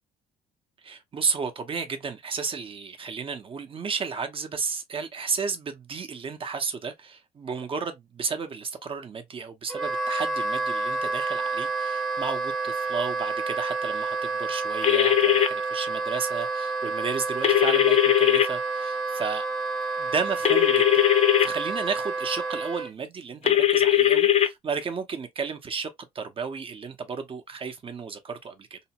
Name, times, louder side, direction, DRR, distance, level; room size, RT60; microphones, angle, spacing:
voice 1, 0.8-19.5 20.0-21.0 21.4-28.8, right 5 dB, 30° right, 0.7 m, -33 dB
Wind instrument woodwind instrument, 9.7-22.9, right 3 dB, ahead, 0.8 m, -29 dB
sound 1, 14.8-15.5 17.4-18.5 20.4-21.5 23.5-24.5, left 11 dB, 40° left, 0.6 m, -19 dB
2.8 x 2.1 x 2.8 m
cardioid pair, 110°, 17 cm